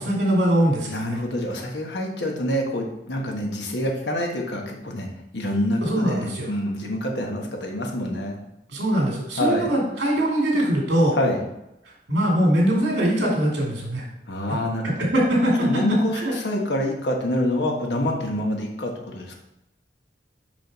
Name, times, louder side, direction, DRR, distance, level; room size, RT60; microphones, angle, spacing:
voice 1, 0.0-1.2 5.8-6.5 8.7-11.2 12.1-14.0 15.0-15.5 16.1-16.3, right 1 dB, 80° right, -2 dB, 2.4 m, -22 dB
voice 2, 0.8-5.1 5.3-8.4 9.4-9.7 11.1-11.4 14.3-15.1 15.6-19.4, left 1 dB, 75° left, 1 dB, 1.2 m, -26 dB
5.6 x 5.0 x 4.0 m, 0.88 s
head